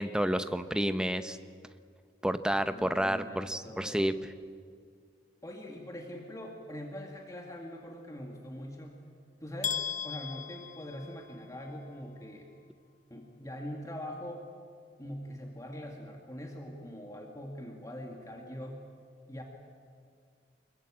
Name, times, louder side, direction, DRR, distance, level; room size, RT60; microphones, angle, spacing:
voice 1, 0.0-1.4 2.2-4.1, equal, 5° right, 10 dB, 0.9 m, -30 dB
voice 2, 2.5-4.1 5.4-9.0 9.4-9.8 10.0-12.5 13.1-14.4 15.0-18.8 19.3-19.4, equal, 20° left, 1 dB, 2.0 m, -43 dB
sound 1, 9.6-11.6, left 7 dB, 45° left, 0.9 m, -37 dB
25.0 x 22.0 x 8.7 m, 2.2 s
head